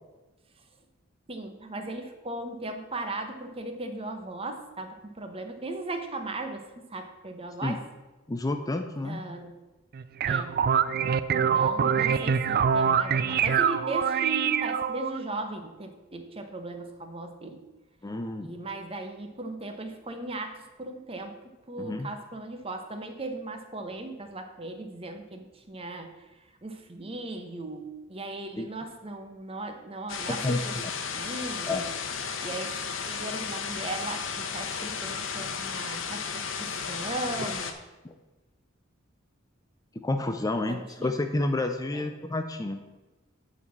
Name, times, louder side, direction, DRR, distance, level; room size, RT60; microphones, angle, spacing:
voice 1, 1.3-6.6 6.9-7.8 9.0-9.5 10.3-10.6 11.3-17.6 18.4-21.4 21.7-26.2 26.6-30.8 31.1-31.9 32.4-32.7 33.1-37.7 40.7-41.1 41.9-42.1, right 2 dB, 30° right, 6 dB, 0.9 m, -37 dB
voice 2, 8.3-9.2 18.0-18.5 21.8-22.1 28.6-28.7 30.3-30.9 31.7-31.8 38.0-38.1 40.0-42.8, left 2 dB, 20° left, 6 dB, 0.5 m, -30 dB
sound 1, 9.9-15.2, right 7 dB, 50° right, 0.4 m, -25 dB
sound 2, 30.1-37.7, left 6 dB, 70° left, 0.9 m, -34 dB
9.0 x 4.2 x 7.3 m, 1.2 s
head